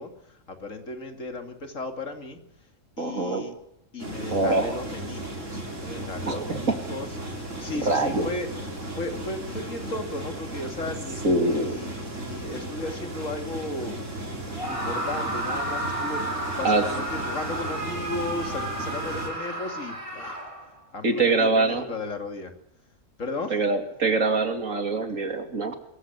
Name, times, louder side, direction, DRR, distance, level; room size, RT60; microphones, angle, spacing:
voice 1, 0.0-2.4 3.0-3.5 3.9-8.5 8.9-14.3 14.7-20.4 20.9-22.5 23.2-23.6, left 2 dB, 75° left, 6 dB, 3.1 m, -35 dB
voice 2, 3.0-3.4 4.3-4.8 6.2-6.8 7.8-8.3 11.2-11.8 16.6-16.8 21.0-21.8 23.5-25.7, right 3 dB, 85° right, 6 dB, 3.2 m, -24 dB
sound 1, 4.0-19.3, right 1 dB, 70° right, 5.1 m, -35 dB
Screaming, 14.5-20.8, right 1 dB, 25° right, 3.4 m, -32 dB
22.0 x 15.0 x 9.5 m, 0.82 s
omnidirectional pair, 1.3 m